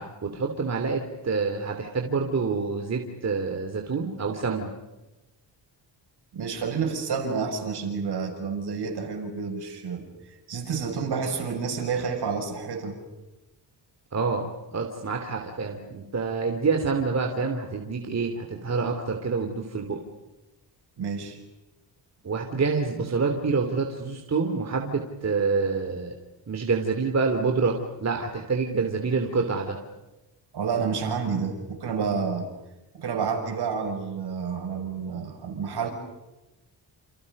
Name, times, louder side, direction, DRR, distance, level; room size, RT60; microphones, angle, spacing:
voice 1, 0.0-4.7 14.1-14.5 14.7-20.0 22.2-26.2 26.5-29.8, right 4 dB, 40° right, 3 dB, 3.1 m, -27 dB
voice 2, 6.3-10.1 10.5-13.0 21.0-21.4 30.5-32.5 32.9-35.9, right 5 dB, 65° right, 4 dB, 6.8 m, -29 dB
29.5 x 29.0 x 5.4 m, 1.0 s
cardioid pair, 130°, 43 cm